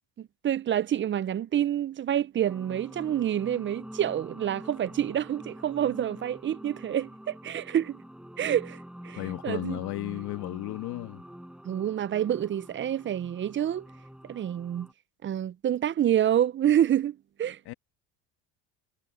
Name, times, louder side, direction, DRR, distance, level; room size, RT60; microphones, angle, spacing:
voice 1, 0.2-8.0 8.4-9.8 11.6-13.9 14.2-14.9 15.2-17.6, right 10 dB, 30° right, 0.4 m, -28 dB
sound 1, 2.5-14.9, equal, ahead, 6.0 m, -46 dB
voice 2, 9.2-11.2 17.6-17.7, left 18 dB, 70° left, 1.4 m, -34 dB
supercardioid pair, 90°, 41 cm